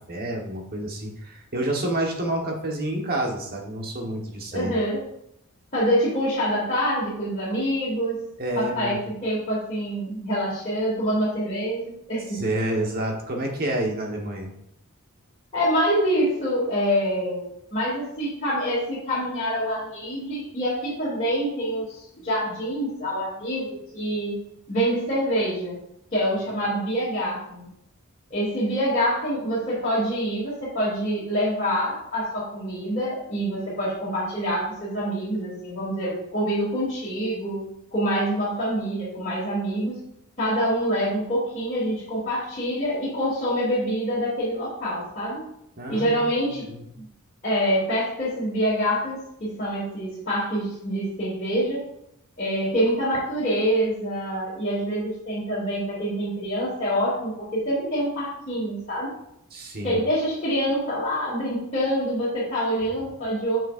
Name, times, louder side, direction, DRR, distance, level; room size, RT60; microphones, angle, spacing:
voice 1, 0.1-4.8 8.4-9.0 12.3-14.5 45.8-46.9 59.5-60.0, right 1 dB, 45° right, 1 dB, 1.3 m, -29 dB
voice 2, 4.5-5.0 5.7-8.2 8.6-12.4 15.5-24.3 24.7-25.8 26.1-27.7 28.3-37.6 37.9-40.0 40.4-45.5 45.9-46.7 46.9-47.0 47.4-51.9 52.4-59.1 59.8-63.6, equal, 35° left, -11 dB, 2.7 m, -26 dB
7.8 x 6.0 x 2.5 m, 0.76 s
head